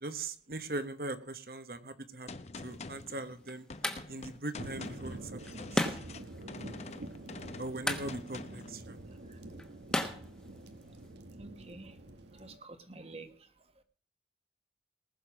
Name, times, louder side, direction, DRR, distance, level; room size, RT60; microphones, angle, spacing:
voice 1, 0.0-2.3 2.6-3.7 4.1-6.0 7.6-9.0, right 2 dB, 55° right, 11 dB, 1.1 m, -40 dB
Gunshot gunfire, 2.3-8.8, left 3 dB, 40° left, 0.8 m, -46 dB
sound 1, 2.6-11.1, left 1 dB, 5° left, 1.2 m, -39 dB
sound 2, 4.6-12.6, right 1 dB, 85° right, 1.2 m, -47 dB
voice 2, 11.4-11.9 12.4-13.3, right 3 dB, 35° right, 9 dB, 1.3 m, -48 dB
19.5 x 6.7 x 6.0 m, 0.43 s
head